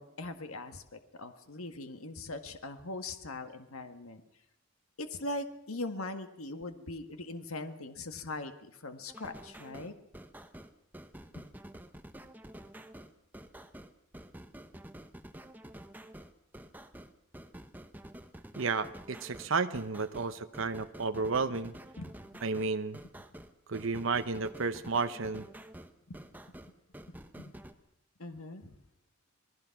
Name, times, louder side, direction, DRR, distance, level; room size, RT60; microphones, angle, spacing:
voice 1, 0.0-4.2 5.0-9.9 11.3-11.5 22.0-22.1 26.1-26.2 27.4-27.6 28.2-28.7, left 2 dB, 85° left, 8 dB, 1.7 m, -41 dB
sound 1, 9.1-27.7, right 1 dB, 10° right, 1.0 m, -49 dB
voice 2, 18.6-21.7 22.4-23.0 23.7-25.4, right 4 dB, 65° right, 9 dB, 0.8 m, -32 dB
27.0 x 19.5 x 5.9 m, 0.78 s
head